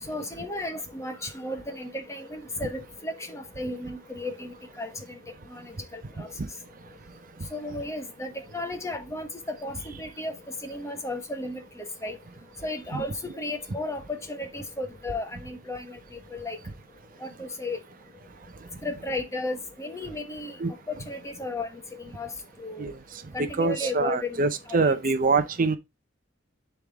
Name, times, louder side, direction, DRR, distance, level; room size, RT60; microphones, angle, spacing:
voice 1, 0.0-5.2 5.5-6.3 7.5-12.2 12.6-16.6 17.2-17.8 18.8-20.6 20.9-22.9 23.3-25.0, left 2 dB, 15° left, 1.2 m, -34 dB
voice 2, 23.6-25.8, right 3 dB, 45° right, 0.6 m, -24 dB
10.5 x 3.5 x 3.5 m
head